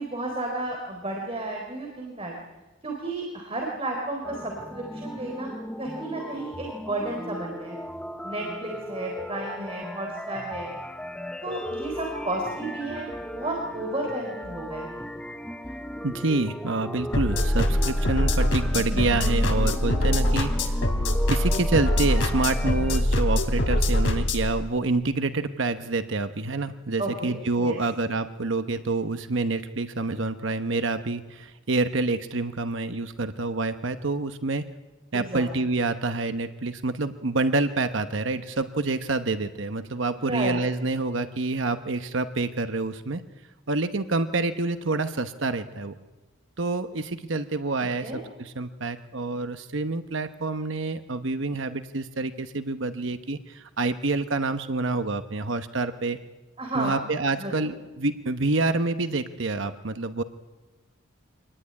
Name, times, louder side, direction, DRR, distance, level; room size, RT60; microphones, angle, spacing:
voice 1, 0.0-2.3 2.8-5.5 5.8-7.8 8.2-10.8 11.4-15.1 27.0-27.8 35.1-35.4 40.1-40.6 47.8-48.2 56.6-57.0 57.4-57.7, right 2 dB, 30° right, 0 dB, 3.8 m, -33 dB
sound 1, 4.2-23.0, equal, 5° left, 0.9 m, -37 dB
voice 2, 16.0-20.8 21.3-34.6 35.1-43.2 43.7-45.9 46.6-48.1 48.4-56.2 56.7-60.2, right 3 dB, 65° right, 9 dB, 1.0 m, -27 dB
sound 2, 17.1-24.5, left 1 dB, 70° left, 3.3 m, -23 dB
25.0 x 19.0 x 9.7 m, 1.2 s
head